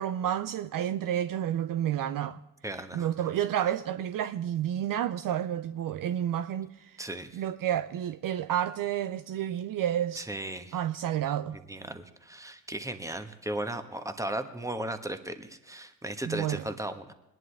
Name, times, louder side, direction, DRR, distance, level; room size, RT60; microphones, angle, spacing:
voice 1, 0.0-2.4 2.9-7.0 7.3-10.3 10.7-11.6 16.2-16.6, right 11 dB, 55° right, 0.6 m, -30 dB
voice 2, 2.6-3.1 7.0-7.4 10.2-10.8 11.7-17.1, right 1 dB, 10° right, 1.4 m, -36 dB
21.0 x 11.0 x 3.5 m
hypercardioid pair, 50°, 39 cm